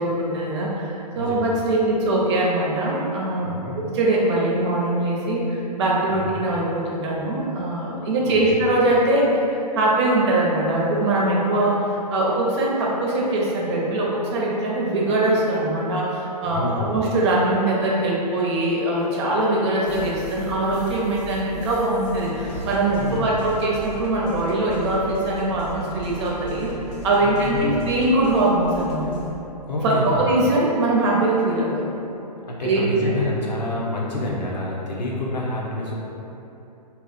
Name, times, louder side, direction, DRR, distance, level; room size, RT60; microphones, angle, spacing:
voice 1, 0.0-26.7 27.0-29.0 29.8-31.9 32.6-33.0, right 2 dB, 40° right, -4 dB, 0.6 m, -22 dB
voice 2, 1.1-1.7 3.4-3.7 6.1-6.3 8.2-8.6 16.4-17.0 23.0-23.2 27.2-27.7 29.7-30.2 32.5-35.9, left 2 dB, 85° left, -3 dB, 0.7 m, -28 dB
sound 1, 19.8-29.3, equal, 25° left, 0.6 m, -37 dB
2.8 x 2.0 x 4.0 m, 3.0 s
hypercardioid pair, 140°, 21 cm